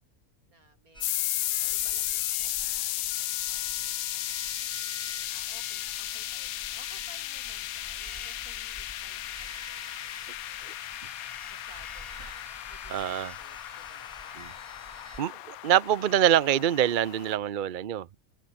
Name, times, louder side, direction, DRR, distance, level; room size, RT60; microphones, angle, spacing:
voice 1, 0.4-4.7 4.9-12.3 12.7-14.7 15.5-15.6, right 2 dB, 85° right, 6.3 m, -58 dB
sound 1, 0.9-15.2, right 1 dB, 20° right, 4.9 m, -48 dB
sound 2, 1.0-17.4, left 15 dB, 85° left, 1.0 m, -35 dB
voice 2, 12.9-13.3 14.4-14.5 15.2-18.2, right 11 dB, 50° right, 0.6 m, -25 dB
omnidirectional pair, 1.5 m